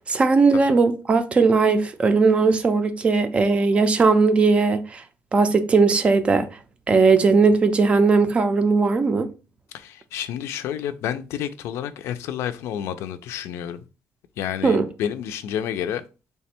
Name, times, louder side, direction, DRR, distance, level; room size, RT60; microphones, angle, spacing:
voice 1, 0.1-5.0 5.3-6.5 6.9-9.3 14.6-14.9, right 4 dB, 25° right, 0.4 m, -18 dB
voice 2, 9.7-13.8 14.4-16.0, left 10 dB, 85° left, 0.4 m, -30 dB
3.3 x 2.1 x 4.2 m
cardioid pair, 170°, 4 cm